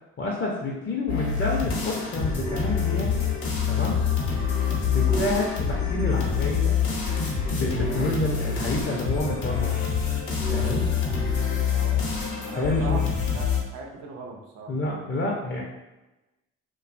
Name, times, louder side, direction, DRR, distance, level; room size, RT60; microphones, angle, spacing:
voice 1, 0.2-3.2 3.7-4.0 4.7-6.9 7.5-9.9 10.5-10.9 12.6-13.0 14.7-15.6, left 2 dB, 40° left, -3 dB, 0.5 m, -29 dB
sound 1, 1.1-13.6, left 7 dB, 80° left, 0.8 m, -26 dB
sound 2, 2.4-2.8 5.1-6.0 7.7-8.8 10.4-11.8, right 3 dB, 20° right, 0.4 m, -34 dB
voice 2, 11.7-12.1 12.5-13.0 13.3-14.7, right 4 dB, 85° right, 0 dB, 0.6 m, -39 dB
2.6 x 2.2 x 2.5 m, 1.1 s
supercardioid pair, 70°, 30 cm